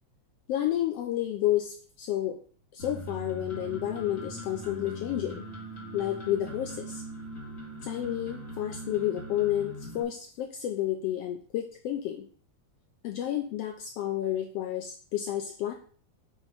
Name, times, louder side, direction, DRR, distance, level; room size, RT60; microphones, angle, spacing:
voice 1, 0.5-2.4 2.7-5.5 5.9-7.0 7.8-12.3 13.0-15.7, left 12 dB, 80° left, 4 dB, 1.4 m, -30 dB
sound 1, 2.8-10.0, right 1 dB, 35° left, 1.6 m, -41 dB
7.6 x 3.1 x 5.0 m, 0.43 s
omnidirectional pair, 3.4 m